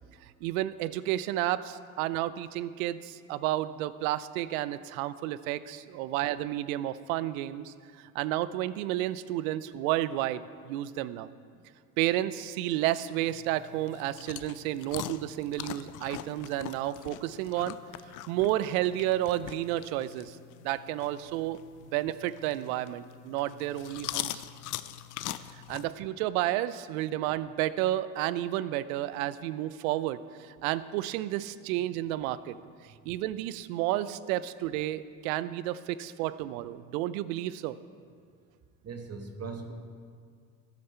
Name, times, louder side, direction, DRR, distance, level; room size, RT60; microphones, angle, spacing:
voice 1, 0.4-7.7 8.1-11.3 12.0-17.8 18.3-20.4 20.6-21.6 21.9-24.5 25.7-32.6 33.1-37.8, right 14 dB, 75° right, 16 dB, 0.6 m, -31 dB
sound 1, 13.3-25.9, left 14 dB, 45° left, 0.6 m, -42 dB
voice 2, 38.8-39.7, right 4 dB, 35° right, 4 dB, 1.5 m, -40 dB
14.0 x 10.5 x 4.5 m, 2.1 s
hypercardioid pair, 75°, 42 cm